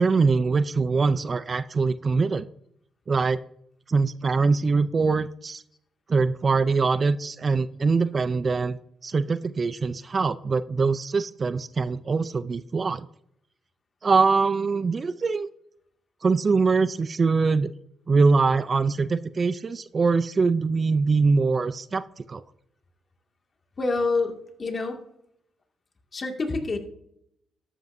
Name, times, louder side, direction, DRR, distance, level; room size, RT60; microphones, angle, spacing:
voice 1, 0.0-2.5 3.1-3.4 3.9-5.6 6.1-8.8 9.0-13.1 14.0-15.5 16.2-17.7 18.1-22.4, right 4 dB, 35° right, 14 dB, 0.4 m, -23 dB
voice 2, 23.8-25.0 26.1-26.8, left 3 dB, 35° left, 3 dB, 2.1 m, -27 dB
13.5 x 11.0 x 2.7 m, 0.74 s
cardioid pair, 90°, 0 cm